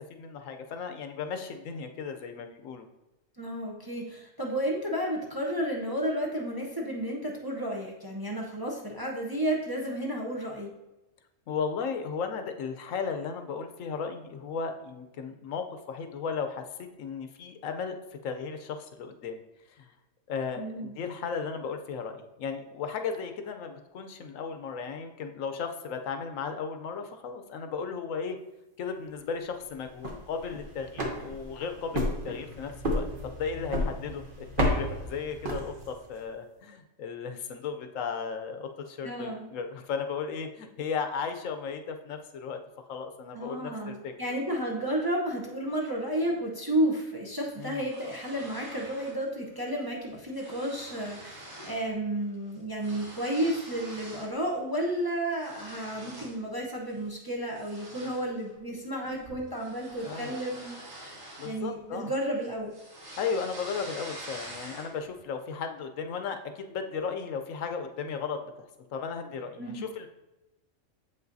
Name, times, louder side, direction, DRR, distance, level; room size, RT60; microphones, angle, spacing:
voice 1, 0.0-2.9 11.5-17.9 18.2-19.4 19.8-19.9 20.3-28.4 28.8-42.6 42.9-44.1 47.6-47.9 60.0-60.3 61.4-62.1 63.2-70.1, left 5 dB, 80° left, 6 dB, 1.0 m, -35 dB
voice 2, 3.4-10.7 20.6-20.9 39.0-39.5 43.3-62.7 69.6-69.9, right 1 dB, 20° right, -2 dB, 0.7 m, -32 dB
sound 1, 29.8-36.1, left 1 dB, 45° right, 1.1 m, -32 dB
sound 2, 47.6-49.2 49.6-49.8 50.1-51.9 52.2-54.4 54.8-56.4 56.9-57.1 57.5-62.1 62.4-65.1, right 1 dB, 75° right, 1.7 m, -46 dB
7.4 x 5.5 x 2.6 m, 1.0 s
omnidirectional pair, 1.4 m